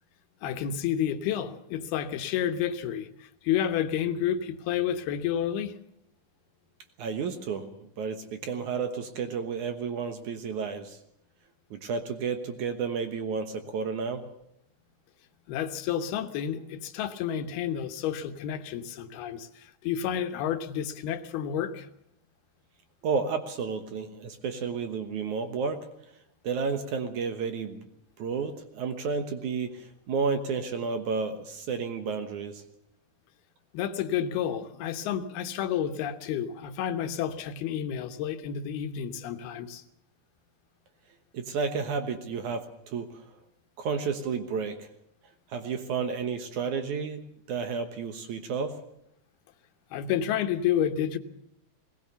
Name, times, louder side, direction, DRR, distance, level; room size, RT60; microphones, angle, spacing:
voice 1, 0.4-5.8 15.5-21.9 33.7-39.8 49.9-51.2, left 9 dB, 80° left, 8 dB, 3.1 m, -30 dB
voice 2, 7.0-7.7 8.0-11.0 11.7-14.2 23.0-25.9 26.4-27.8 28.2-32.6 41.3-43.2 43.8-44.9 45.5-48.8, right 5 dB, 60° right, 8 dB, 2.3 m, -31 dB
20.0 x 19.0 x 6.9 m, 0.77 s
omnidirectional pair, 4.5 m